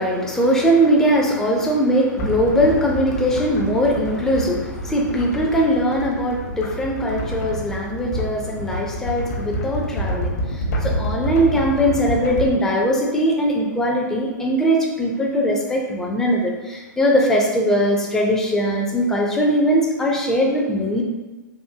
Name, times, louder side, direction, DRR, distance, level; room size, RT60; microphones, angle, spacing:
voice 1, 0.0-21.0, equal, 5° left, -1 dB, 0.4 m, -20 dB
sound 1, 2.2-12.5, equal, 55° left, 0.8 m, -28 dB
3.6 x 2.6 x 2.6 m, 1.2 s
figure-of-eight pair, 120°, 10 cm